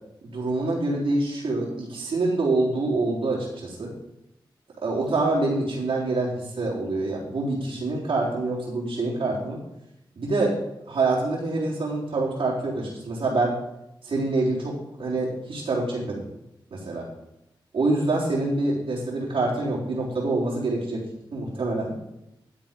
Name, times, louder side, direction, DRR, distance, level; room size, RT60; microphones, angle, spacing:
voice 1, 0.2-3.9 4.8-9.6 10.2-10.5 10.9-13.5 14.0-16.3 16.7-17.1 17.7-21.0 21.3-22.0, right 2 dB, 80° right, -6 dB, 3.8 m, -26 dB
12.5 x 7.2 x 5.3 m, 0.85 s
cardioid pair, 65°, 9 cm